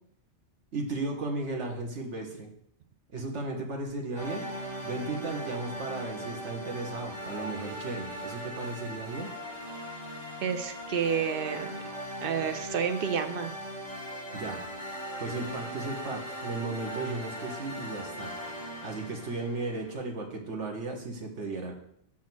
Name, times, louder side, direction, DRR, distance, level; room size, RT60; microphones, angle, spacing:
voice 1, 0.7-2.5 3.1-4.5 4.8-9.3 14.3-14.6 15.2-18.4 18.8-21.7, right 3 dB, 80° right, 1 dB, 1.6 m, -35 dB
sound 1, 4.1-19.9, equal, 20° right, 2.9 m, -39 dB
voice 2, 10.4-11.7 12.2-13.5, right 7 dB, 60° right, 9 dB, 0.7 m, -30 dB
6.1 x 3.8 x 6.0 m, 0.70 s
omnidirectional pair, 1.2 m